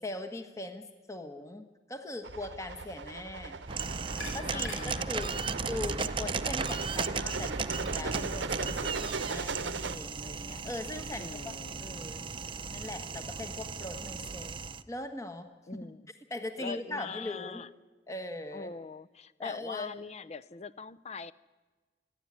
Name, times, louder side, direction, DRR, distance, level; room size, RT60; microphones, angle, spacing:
voice 1, 0.0-3.6 4.3-11.5 11.8-12.3 12.7-14.5 14.9-15.9 16.3-17.6 18.1-18.7 19.4-19.9, left 2 dB, 15° left, 7 dB, 1.4 m, -40 dB
sound 1, 2.2-10.0, right 4 dB, 75° right, 0.8 m, -38 dB
sound 2, 3.6-8.7, left 2 dB, 80° left, 4.8 m, -50 dB
sound 3, 3.7-14.8, right 5 dB, 30° right, 0.6 m, -36 dB
voice 2, 4.5-5.1 11.2-12.0 15.7-16.1 16.6-17.7 18.5-21.3, left 4 dB, 35° left, 14 dB, 0.6 m, -43 dB
26.5 x 11.0 x 9.9 m, 1.3 s
head